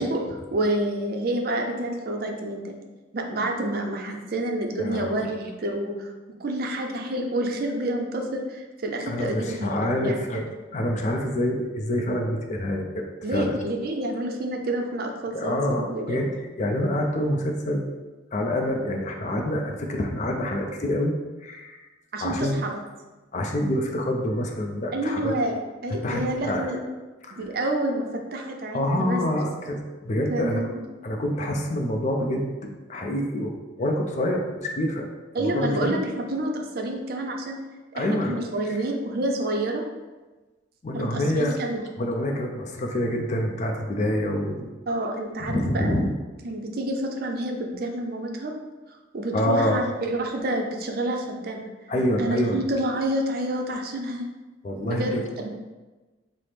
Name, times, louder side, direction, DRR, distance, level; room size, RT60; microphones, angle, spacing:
voice 1, 0.0-2.7 3.1-6.1 6.4-10.4 13.2-16.2 22.1-22.8 24.9-26.8 27.3-29.2 30.3-30.8 35.3-37.6 38.0-39.8 40.9-41.8 44.9-45.9 46.4-48.5 49.1-51.7 52.2-54.3 54.8-55.5, right 1 dB, 50° right, 2 dB, 0.5 m, -28 dB
voice 2, 4.8-5.3 9.1-10.4 10.7-13.1 13.3-13.6 15.3-17.8 18.3-21.1 21.4-21.8 22.2-22.6 23.3-25.3 26.0-26.8 27.2-27.5 28.7-30.6 31.0-35.1 35.4-36.0 37.9-38.4 38.7-38.8 40.8-41.6 42.0-44.7 45.5-46.1 49.3-49.9 51.9-52.6 54.6-55.2, left 1 dB, 40° left, 2 dB, 0.4 m, -26 dB
5.7 x 2.0 x 3.3 m, 1.2 s
head